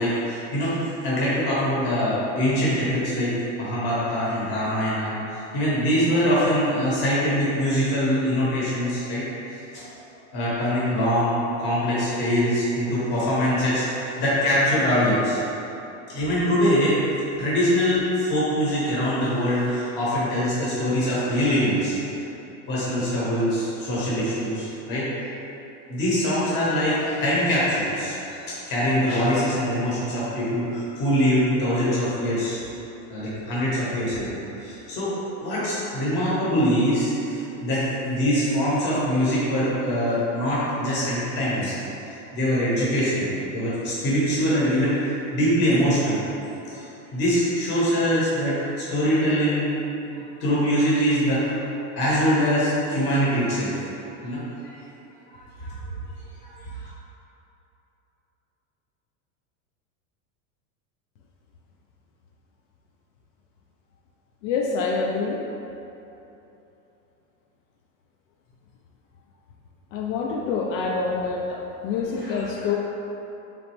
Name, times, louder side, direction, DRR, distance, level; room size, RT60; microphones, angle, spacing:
voice 1, 0.0-9.2 9.5-9.9 10.3-15.4 16.1-17.0 17.4-22.0 22.7-25.1 25.9-32.6 33.1-41.8 42.0-46.3 46.7-49.8 50.4-51.6 52.0-53.8 54.2-54.4 55.3-55.8 56.4-56.9 72.1-72.4, equal, 25° left, -8 dB, 0.9 m, -23 dB
voice 2, 64.4-65.4 69.9-72.8, left 4 dB, 75° left, -1 dB, 0.5 m, -26 dB
3.9 x 3.1 x 3.0 m, 3.0 s
supercardioid pair, 180°, 40 cm